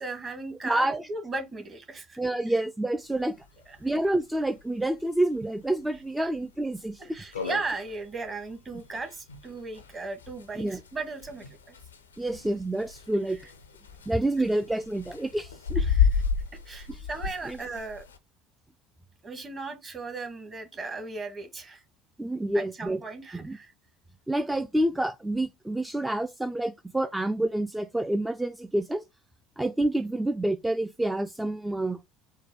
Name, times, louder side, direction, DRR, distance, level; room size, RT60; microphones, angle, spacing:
voice 1, 0.0-2.2 2.5-2.6 3.7-3.8 7.0-11.8 15.7-16.2 16.6-18.1 19.2-21.8 22.5-23.7, right 3 dB, 30° right, 1.4 m, -37 dB
voice 2, 0.6-1.0 2.2-3.4 3.8-7.0 7.3-7.4 10.6-10.8 12.2-13.4 14.1-15.8 16.9-17.1 17.5-17.6 22.2-23.0 23.3-23.6 24.3-29.0 29.6-32.0, right 1 dB, 10° right, 0.4 m, -28 dB
sound 1, 3.1-3.2 3.5-3.6 3.9-4.0 4.6-4.8 5.3-5.4 5.9-6.0 6.4-6.5 6.9-7.0 7.1-18.2, left 7 dB, 90° left, 0.5 m, -31 dB
4.6 x 2.1 x 4.5 m
hypercardioid pair, 70°, 0 cm